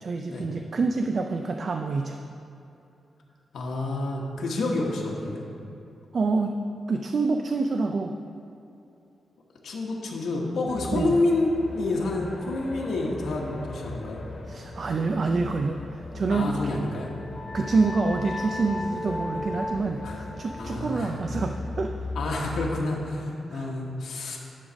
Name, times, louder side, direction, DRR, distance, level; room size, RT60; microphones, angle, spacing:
voice 1, 0.0-2.2 6.1-6.5 6.9-8.1 10.9-11.2 14.5-16.6 17.5-21.9 23.5-23.7, right 3 dB, 40° right, 4 dB, 0.4 m, -27 dB
voice 2, 3.5-5.5 9.6-14.2 16.3-17.1 20.0-20.2 20.6-21.1 22.1-24.4, left 2 dB, 75° left, -2 dB, 1.2 m, -28 dB
sound 1, 10.7-22.8, left 2 dB, 40° left, 1.3 m, -39 dB
sound 2, 16.7-22.1, left 1 dB, 10° left, 0.7 m, -37 dB
11.0 x 4.0 x 6.2 m, 2.7 s
wide cardioid pair, 160°, 0 cm